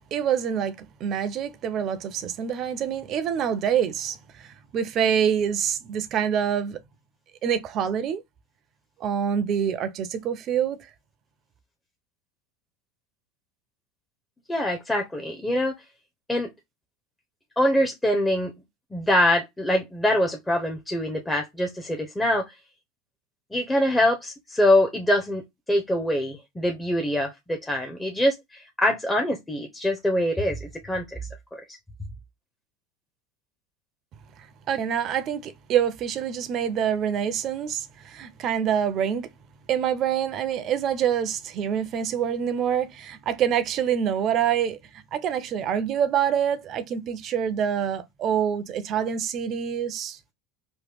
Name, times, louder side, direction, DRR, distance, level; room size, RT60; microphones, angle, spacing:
voice 1, 0.1-6.8 7.4-8.2 9.0-10.9 34.7-39.3 39.7-44.8 45.1-50.2, right 8 dB, 45° right, 0.5 m, -26 dB
voice 2, 14.5-15.7 16.3-16.5 17.6-18.5 18.9-22.4 23.5-25.4 25.7-31.0 31.5-31.6, left 1 dB, 10° left, 0.7 m, -24 dB
3.0 x 2.1 x 3.4 m
supercardioid pair, 105°, 0 cm